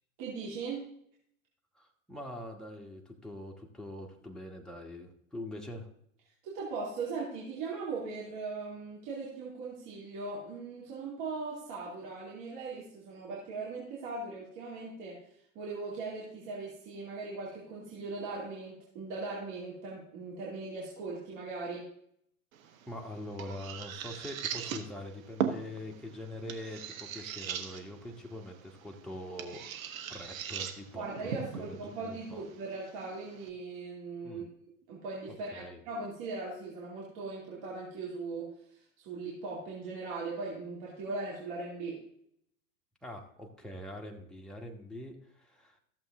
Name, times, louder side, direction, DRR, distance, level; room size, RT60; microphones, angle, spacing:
voice 1, 0.2-0.9 6.4-21.9 30.9-34.4 34.9-42.0, right 3 dB, 45° right, -4 dB, 2.8 m, -39 dB
voice 2, 1.7-5.9 22.9-29.6 30.1-32.4 34.2-34.5 35.3-35.8 43.0-45.8, left 1 dB, ahead, 0 dB, 1.4 m, -44 dB
sound 1, 22.5-33.5, right 8 dB, 65° right, 1.4 m, -40 dB
14.0 x 7.3 x 3.6 m, 0.71 s
figure-of-eight pair, 95°, 44 cm